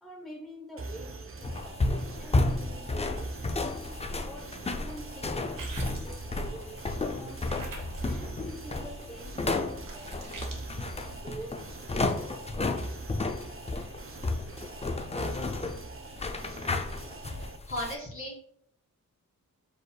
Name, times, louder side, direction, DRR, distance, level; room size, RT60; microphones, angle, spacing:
voice 1, 0.0-3.3 3.8-7.6 8.0-10.4 10.7-12.4, right 1 dB, ahead, -2 dB, 0.8 m, -47 dB
sound 1, 0.8-17.6, right 3 dB, 40° right, 0.6 m, -44 dB
sound 2, 1.4-18.0, left 2 dB, 20° left, 0.3 m, -33 dB
sound 3, 5.4-7.0 7.4-11.2, right 2 dB, 75° right, 1.0 m, -45 dB
voice 2, 17.2-18.5, left 1 dB, 40° left, -3 dB, 1.9 m, -38 dB
4.9 x 4.6 x 2.2 m, 0.62 s
wide cardioid pair, 125°, 32 cm